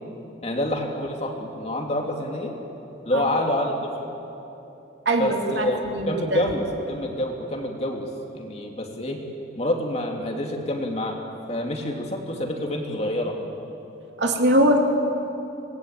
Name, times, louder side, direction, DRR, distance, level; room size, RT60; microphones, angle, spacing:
voice 1, 0.4-2.5 3.0-3.9 5.2-5.8 6.1-8.1 8.3-9.2 9.5-11.2 11.5-13.4, left 1 dB, 35° left, 1 dB, 2.8 m, -27 dB
voice 2, 5.0-6.4 14.2-14.8, right 1 dB, 75° right, 2 dB, 2.9 m, -22 dB
26.0 x 19.5 x 9.0 m, 2.9 s
head